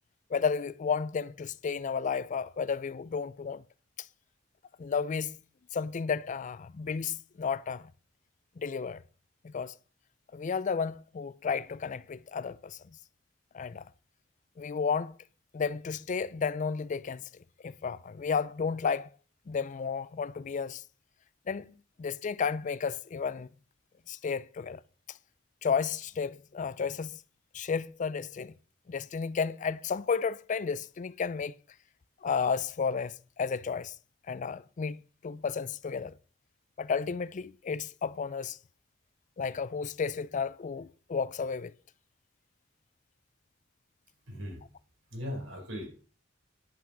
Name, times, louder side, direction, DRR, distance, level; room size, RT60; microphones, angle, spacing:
voice 1, 0.3-3.6 4.8-5.4 5.7-7.9 8.6-9.0 9.4-9.7 10.3-12.8 13.5-13.8 14.6-15.2 15.5-17.2 17.6-19.1 19.5-20.8 21.5-23.5 24.1-24.8 25.6-27.2 27.5-28.5 28.9-31.5 32.2-33.9 34.3-36.2 36.8-38.6 39.4-41.7, left 6 dB, 40° left, 0.4 m, -32 dB
voice 2, 44.3-44.6 45.1-45.9, equal, 75° right, 4.2 m, -38 dB
10.5 x 5.9 x 6.0 m
head